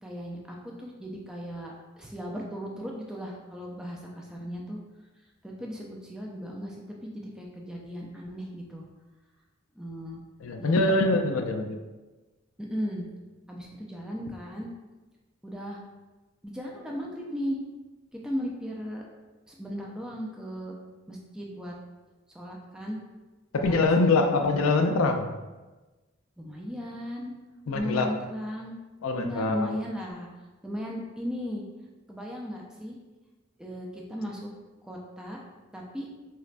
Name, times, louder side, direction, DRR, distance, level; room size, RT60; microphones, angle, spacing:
voice 1, 0.0-4.8 5.4-8.8 9.8-10.2 10.6-11.0 12.6-13.1 13.5-14.7 15.4-15.8 16.4-17.6 18.2-19.1 19.5-20.7 21.1-21.7 22.3-23.0 23.6-23.8 24.3-24.6 26.4-27.3 27.7-28.8 29.2-30.3 30.6-31.6 32.1-33.0 33.6-34.5 34.8-35.4 35.7-36.1, equal, 5° right, -2 dB, 0.3 m, -36 dB
voice 2, 10.4-11.8 23.5-25.3 27.7-28.1 29.0-29.8, left 3 dB, 85° left, 6 dB, 0.4 m, -24 dB
4.0 x 2.1 x 2.4 m, 1.2 s
head